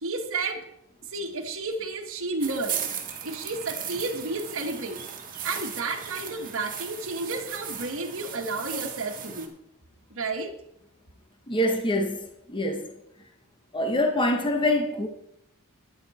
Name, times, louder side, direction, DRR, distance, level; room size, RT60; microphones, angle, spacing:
voice 1, 0.0-0.6 1.1-2.8 3.2-5.0 5.4-9.5 10.1-10.5, right 3 dB, 65° right, 1.6 m, -31 dB
sound 1, 2.4-9.5, right 8 dB, 40° right, 1.8 m, -37 dB
voice 2, 11.5-12.2 12.5-12.9 13.7-15.1, left 1 dB, 25° left, 1.2 m, -24 dB
12.5 x 10.5 x 4.3 m
head